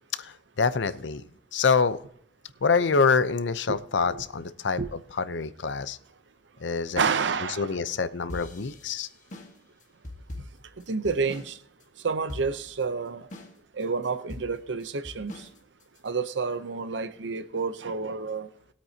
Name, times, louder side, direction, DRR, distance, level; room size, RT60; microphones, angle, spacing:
voice 1, 0.2-1.2 1.5-2.0 2.6-6.0 6.6-7.0 7.5-9.1, left 5 dB, 90° left, 14 dB, 0.7 m, -26 dB
voice 2, 7.0-7.7 10.9-11.6 12.0-13.3 13.8-15.4 16.0-18.5, right 4 dB, 90° right, 11 dB, 0.7 m, -29 dB
sound 1, 8.3-11.5 11.8-11.9 12.3-12.8 13.3-13.8 14.3-16.1, left 1 dB, 45° left, 1.7 m, -42 dB
20.0 x 8.5 x 2.8 m, 0.68 s
head